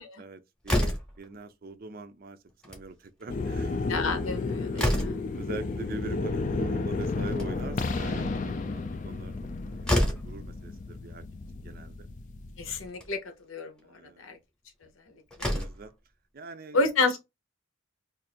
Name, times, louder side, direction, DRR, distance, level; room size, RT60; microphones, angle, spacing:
voice 1, 0.2-2.4 2.6-3.8 4.7-4.9 5.3-9.3 9.6-9.9 10.2-11.3 11.6-12.1 13.8-14.3 15.4-15.9 16.3-16.8, right 3 dB, 45° right, 0.5 m, -43 dB
Slam, 0.6-1.3 2.5-2.9 3.2-3.3 3.6-3.7 4.2-5.4 7.1-7.8 9.4-9.5 9.8-10.4 11.5-11.6 12.0-12.1 12.9-13.1 14.8-14.9 15.3-15.9, left 1 dB, 5° left, 0.9 m, -28 dB
sound 1, 3.3-12.8, left 3 dB, 40° left, 0.4 m, -32 dB
voice 2, 3.9-5.2 12.6-13.2 13.4-13.8 14.2-14.4 15.4-15.5 16.7-17.2, left 3 dB, 90° left, 0.9 m, -29 dB
2.6 x 2.6 x 4.2 m
head